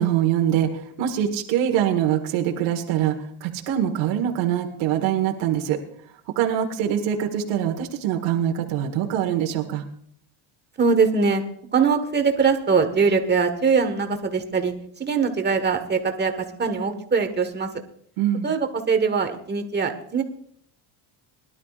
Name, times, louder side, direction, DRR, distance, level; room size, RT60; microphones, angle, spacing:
voice 1, 0.0-5.8 6.4-9.8 18.2-18.5, right 10 dB, 80° right, 3 dB, 1.8 m, -24 dB
voice 2, 10.8-11.4 11.7-17.7 18.4-20.2, right 5 dB, 20° right, 6 dB, 1.5 m, -22 dB
21.5 x 12.0 x 2.5 m, 0.64 s
cardioid pair, 125°, 47 cm